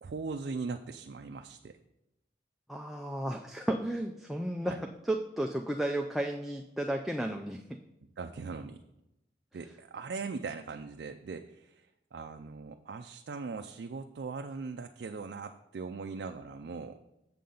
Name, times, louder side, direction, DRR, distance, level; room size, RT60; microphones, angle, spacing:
voice 1, 0.0-1.8 4.6-4.8 8.2-8.8 9.5-17.0, right 4 dB, 70° right, 6 dB, 0.4 m, -40 dB
voice 2, 2.7-4.8 5.1-7.6, right 1 dB, ahead, 1 dB, 0.3 m, -33 dB
7.5 x 7.0 x 3.9 m, 0.89 s
head